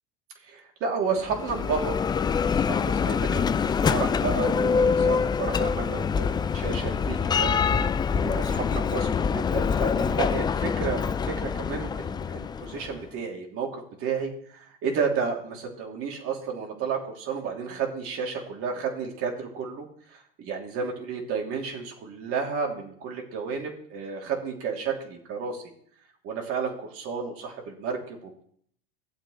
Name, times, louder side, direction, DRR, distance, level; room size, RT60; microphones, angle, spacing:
voice 1, 0.4-25.7 26.2-28.4, right 5 dB, 50° right, 1 dB, 3.0 m, -32 dB
Bell, 1.2-13.0, left 6 dB, 15° left, 0.4 m, -25 dB
16.0 x 7.8 x 3.2 m, 0.63 s
hypercardioid pair, 95°, 29 cm